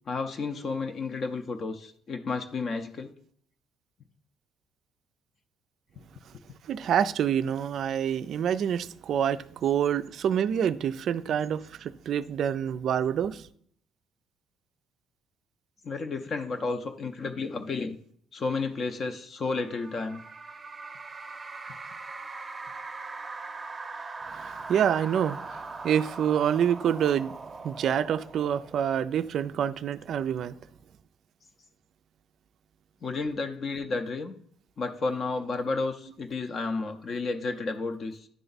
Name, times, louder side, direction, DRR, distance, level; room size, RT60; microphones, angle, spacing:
voice 1, 0.1-3.1 15.8-18.0 18.3-20.2 33.0-34.3 34.8-38.3, left 3 dB, 40° left, 0.5 m, -32 dB
voice 2, 6.7-13.5 24.3-27.3 27.6-30.6, right 9 dB, 55° right, 0.3 m, -27 dB
sound 1, 19.6-29.3, right 3 dB, 25° right, 0.6 m, -41 dB
10.0 x 3.4 x 4.0 m
cardioid pair, 125°, 0 cm